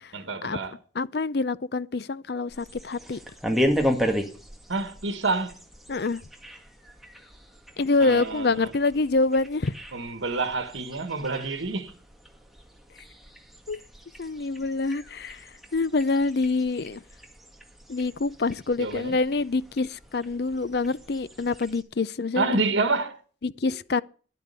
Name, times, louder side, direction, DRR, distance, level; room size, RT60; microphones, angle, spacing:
voice 1, 0.1-0.8 4.7-5.5 8.0-8.7 9.9-11.9 18.8-19.2 22.4-23.2, right 3 dB, 80° right, 1.6 m, -28 dB
voice 2, 1.0-3.2 5.9-6.2 7.8-9.7 13.7-13.8 14.2-15.4 15.7-17.0 17.9-22.6 23.4-24.0, left 3 dB, 55° left, 0.6 m, -26 dB
sound 1, 2.5-21.8, equal, ahead, 1.8 m, -35 dB
12.0 x 11.0 x 6.8 m
head